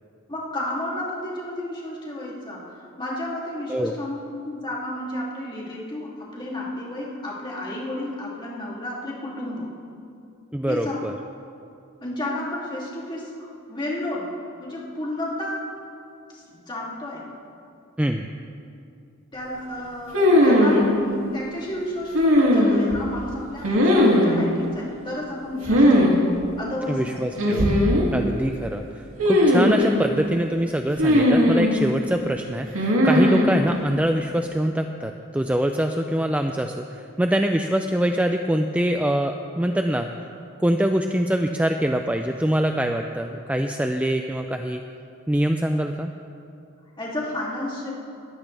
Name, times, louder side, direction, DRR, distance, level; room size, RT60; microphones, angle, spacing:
voice 1, 0.3-4.2 4.4-9.7 10.7-11.0 12.0-15.7 16.3-17.3 19.3-26.1 26.6-27.2 47.0-47.9, left 1 dB, 20° left, -5 dB, 2.7 m, -32 dB
voice 2, 10.5-11.1 18.0-18.3 26.9-27.7 28.1-40.1 40.6-44.8 45.3-46.1, right 1 dB, 5° right, 5 dB, 0.4 m, -24 dB
sound 1, 20.1-20.8 22.1-23.0 23.6-24.4 25.6-26.1 26.4-26.5 27.4-28.1 29.2-30.0 31.0-31.8 32.7-33.5, left 1 dB, 75° right, 2.5 m, -17 dB
20.5 x 14.5 x 3.4 m, 2.5 s
head